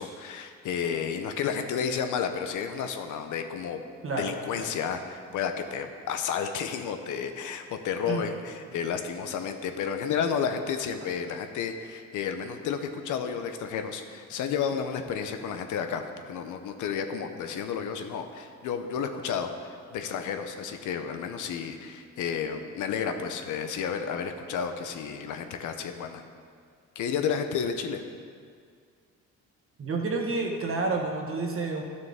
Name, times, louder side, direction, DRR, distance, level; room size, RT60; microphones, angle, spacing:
voice 1, 0.0-3.8 4.2-26.2 27.0-28.0, left 7 dB, 80° left, 7 dB, 0.8 m, -31 dB
voice 2, 4.0-4.7 8.1-8.3 29.8-31.8, right 3 dB, 45° right, 1 dB, 1.4 m, -30 dB
12.0 x 6.4 x 3.6 m, 2.1 s
cardioid pair, 90°, 30 cm